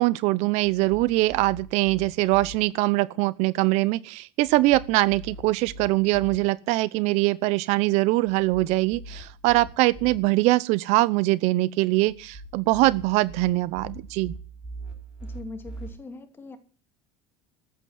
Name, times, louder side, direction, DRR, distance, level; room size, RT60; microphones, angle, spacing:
voice 1, 0.0-14.3, right 20 dB, 60° right, 0.7 m, -22 dB
sound 1, 0.6-2.6 4.4-6.4 8.3-10.2 12.1-15.9, right 1 dB, 10° right, 4.6 m, -42 dB
voice 2, 15.2-16.6, left 3 dB, 15° left, 2.7 m, -41 dB
14.0 x 8.9 x 9.5 m
cardioid pair, 150°, 13 cm